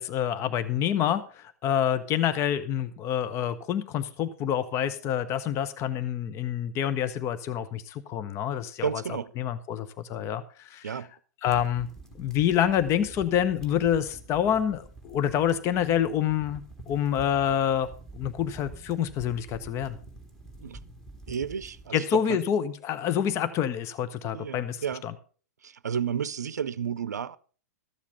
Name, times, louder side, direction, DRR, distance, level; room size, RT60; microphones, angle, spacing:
voice 1, 0.0-9.0 9.4-11.1 11.4-11.9 12.2-20.0 21.9-25.1, left 9 dB, 30° left, 0.8 m, -27 dB
voice 2, 8.8-9.3 10.8-11.1 20.6-20.8 21.3-22.4 24.3-25.0 25.6-27.4, right 7 dB, 75° right, 0.6 m, -32 dB
sound 1, 11.5-21.9, right 2 dB, 5° left, 2.3 m, -47 dB
13.5 x 7.2 x 5.6 m
figure-of-eight pair, 110°, 9 cm